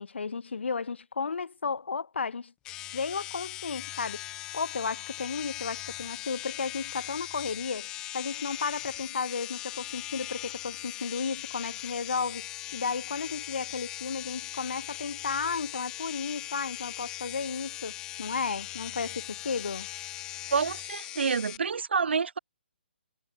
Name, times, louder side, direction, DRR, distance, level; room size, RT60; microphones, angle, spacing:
voice 1, 0.0-2.5 2.9-4.2 4.5-19.9, left 5 dB, 90° left, 1.7 m, -33 dB
sound 1, 2.6-21.6, left 15 dB, 10° left, 1.0 m, -40 dB
voice 2, 20.5-22.4, right 5 dB, 75° right, 0.8 m, -28 dB
hypercardioid pair, 175°, 6 cm